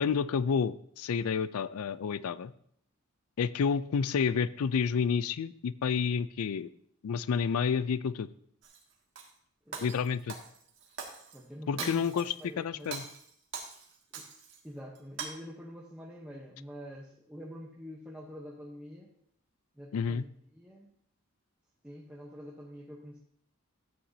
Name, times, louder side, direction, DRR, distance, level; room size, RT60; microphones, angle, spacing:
voice 1, 0.0-2.5 3.4-6.7 7.0-8.3 9.8-10.3 11.7-13.0 19.9-20.2, left 6 dB, 80° left, 16 dB, 0.4 m, -30 dB
Shatter, 8.6-9.3 9.7-11.4 11.8-12.4 12.8-14.6 14.9-15.3, right 5 dB, 55° right, 1.5 m, -42 dB
voice 2, 9.7-10.0 11.3-13.1 14.1-14.3 14.6-19.1 19.7-20.2 20.5-20.9 21.8-23.2, equal, 5° right, -4 dB, 0.8 m, -46 dB
12.5 x 8.6 x 2.7 m, 0.66 s
head